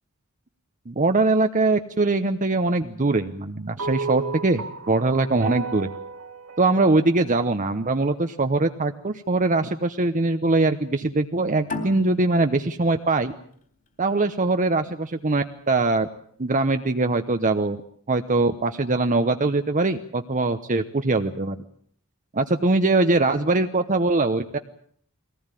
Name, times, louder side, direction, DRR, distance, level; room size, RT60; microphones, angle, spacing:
voice 1, 0.9-5.9 6.6-13.3 14.0-16.1 16.4-17.8 18.1-21.6 22.4-24.6, right 2 dB, 35° right, 7 dB, 0.9 m, -22 dB
sound 1, 3.8-8.2, right 5 dB, 75° right, 2.5 m, -35 dB
sound 2, 11.7-14.9, left 3 dB, 40° left, 3.7 m, -37 dB
23.0 x 18.5 x 9.1 m, 0.62 s
head